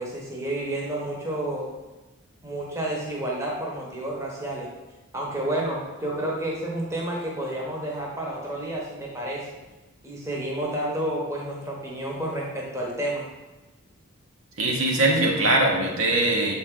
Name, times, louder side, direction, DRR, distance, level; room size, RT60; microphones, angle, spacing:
voice 1, 0.0-1.7 2.4-4.7 5.1-9.5 10.0-13.3, right 1 dB, 15° right, -3 dB, 1.0 m, -30 dB
voice 2, 14.6-16.5, right 2 dB, 65° right, -1 dB, 1.1 m, -21 dB
7.1 x 4.5 x 3.7 m, 1.1 s
head